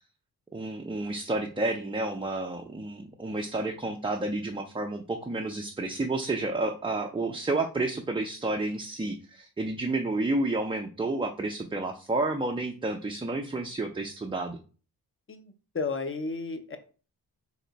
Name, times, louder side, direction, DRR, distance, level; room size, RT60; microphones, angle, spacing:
voice 1, 0.5-14.6, right 2 dB, 15° right, 3 dB, 0.5 m, -30 dB
voice 2, 15.3-16.8, left 4 dB, 30° left, 8 dB, 0.8 m, -33 dB
3.3 x 2.9 x 4.0 m, 0.37 s
cardioid pair, 55°, 39 cm